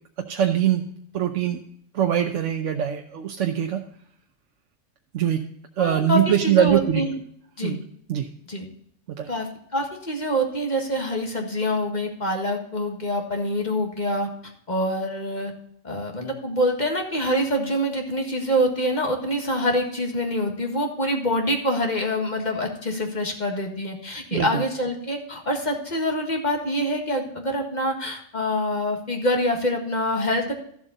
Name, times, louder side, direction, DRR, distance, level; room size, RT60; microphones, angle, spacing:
voice 1, 0.3-0.8 1.1-1.6 1.9-3.8 5.1-5.4 5.8-7.0 7.6-7.8 8.1-8.3 9.2-9.3 24.3-24.6, right 10 dB, 85° right, 4 dB, 1.1 m, -22 dB
voice 2, 5.8-7.1 7.6-7.8 8.5-8.7 9.3-14.3 14.7-15.5 15.8-30.5, equal, 35° left, 3 dB, 1.8 m, -25 dB
13.5 x 7.4 x 3.9 m, 0.68 s
omnidirectional pair, 1.3 m